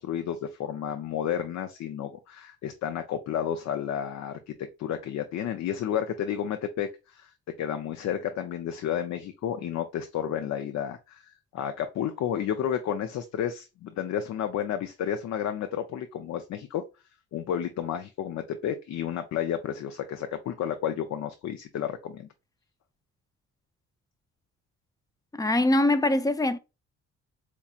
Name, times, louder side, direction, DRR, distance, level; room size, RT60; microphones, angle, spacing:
voice 1, 0.0-4.5 4.8-7.3 7.6-16.8 17.3-22.3, left 9 dB, 65° left, 0.5 m, -31 dB
voice 2, 25.3-26.6, left 1 dB, 10° left, 0.4 m, -23 dB
4.5 x 2.7 x 2.3 m
cardioid pair, 90°, 30 cm